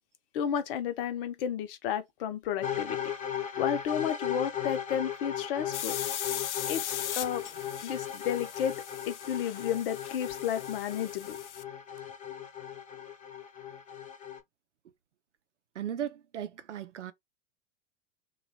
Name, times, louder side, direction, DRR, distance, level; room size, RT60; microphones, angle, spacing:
voice 1, 0.3-3.0 3.6-6.0 6.7-7.4 7.8-8.7 9.1-11.4, left 9 dB, 50° left, 0.8 m, -32 dB
sound 1, 2.6-14.4, left 9 dB, 25° left, 0.8 m, -37 dB
sound 2, 5.7-11.6, left 11 dB, 75° left, 0.5 m, -39 dB
voice 2, 15.7-17.1, right 10 dB, 80° right, 0.6 m, -36 dB
3.1 x 2.4 x 4.0 m
figure-of-eight pair, 95°, 35 cm